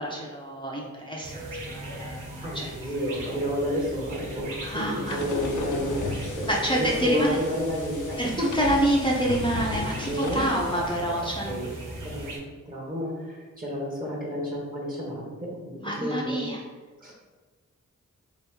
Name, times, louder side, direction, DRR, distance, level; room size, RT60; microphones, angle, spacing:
voice 1, 0.0-1.4 1.7-2.7 4.6-5.2 6.5-7.4 8.2-11.5 15.8-16.6, right 1 dB, 15° left, -3 dB, 0.5 m, -27 dB
sound 1, 1.2-12.4, right 1 dB, 80° right, 0.8 m, -39 dB
voice 2, 2.4-8.8 10.1-10.5 11.4-11.7 12.0-16.4 17.0-17.1, equal, 25° right, -3 dB, 1.0 m, -31 dB
sound 2, 5.1-11.0, left 3 dB, 70° left, 0.5 m, -35 dB
2.8 x 2.5 x 3.5 m, 1.4 s
cardioid pair, 45°, 32 cm